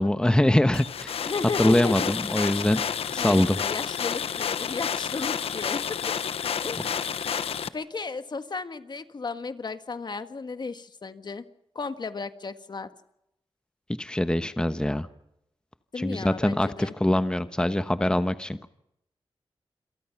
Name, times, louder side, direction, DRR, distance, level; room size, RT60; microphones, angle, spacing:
voice 1, 0.0-1.1 1.6-2.8 3.1-3.6 6.9-7.0 14.0-15.1 16.0-18.7, left 1 dB, 10° left, 11 dB, 1.1 m, -23 dB
sound 1, 0.7-7.7, left 7 dB, 90° left, 0.9 m, -30 dB
voice 2, 1.2-2.1 3.1-6.3 6.6-7.2 7.7-11.4 11.7-12.9 15.9-16.9, left 4 dB, 50° left, 10 dB, 1.5 m, -34 dB
27.5 x 22.5 x 5.9 m, 0.81 s
cardioid pair, 75°, 10 cm